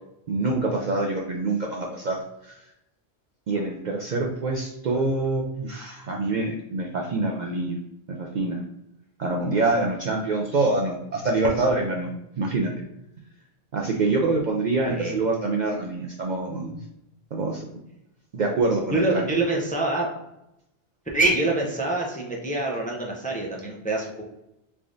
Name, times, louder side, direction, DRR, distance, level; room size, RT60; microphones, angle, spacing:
voice 1, 0.3-2.6 3.5-7.8 8.2-8.6 9.2-12.1 12.4-12.7 13.7-16.8 17.3-17.6 18.3-19.3, right 3 dB, 55° right, 0 dB, 0.5 m, -25 dB
voice 2, 18.9-20.1 21.1-24.2, right 2 dB, 10° left, -1 dB, 0.4 m, -25 dB
3.5 x 3.4 x 2.5 m, 0.84 s
omnidirectional pair, 1.1 m